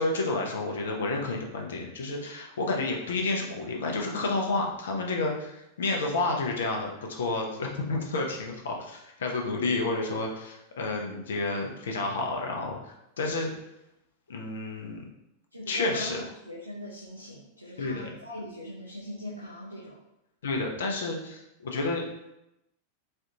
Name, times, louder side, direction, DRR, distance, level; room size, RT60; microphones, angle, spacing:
voice 1, 0.0-13.5 14.3-15.0 15.7-16.2 17.8-18.1 20.4-22.0, left 3 dB, 65° left, 1 dB, 0.6 m, -30 dB
voice 2, 15.5-19.9, left 1 dB, 85° right, -6 dB, 0.7 m, -40 dB
4.2 x 2.5 x 2.8 m, 0.86 s
figure-of-eight pair, 90°, 0 cm